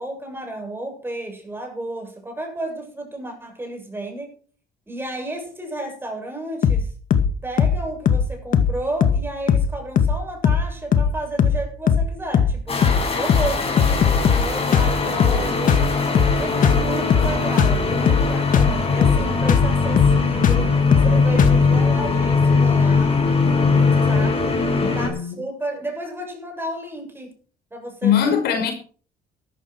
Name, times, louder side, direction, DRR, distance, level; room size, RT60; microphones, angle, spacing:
voice 1, 0.0-4.3 4.9-6.9 7.4-12.8 13.2-15.8 16.4-20.7 21.0-23.2 24.0-24.5 24.9-27.4 27.7-28.4, right 1 dB, 15° right, 7.5 m, -32 dB
sound 1, 6.6-6.8 7.1-7.3 7.6-7.8 8.1-8.3 8.5-8.7 9.0-9.2 9.5-9.7 10.0-10.2 10.4-10.7 10.9-11.1 11.4-11.6 11.9-12.1 12.3-12.6 12.8-13.0 13.3-13.5 13.8-14.5 14.7-14.9 15.2-15.4 15.7-15.9 16.1-16.4 16.6-16.8 17.1-17.3 17.6-17.8 18.1-18.3 18.5-18.7 19.0-19.2 19.5-19.7 20.0-20.2 20.4-20.6 20.9-21.1 21.4-21.6, left 7 dB, 50° left, 2.1 m, -18 dB
sound 2, 12.7-25.1, left 4 dB, 35° left, 7.1 m, -20 dB
voice 2, 24.8-25.4 28.0-28.7, left 8 dB, 75° left, 5.2 m, -21 dB
13.5 x 13.0 x 4.7 m
cardioid pair, 110°, 17 cm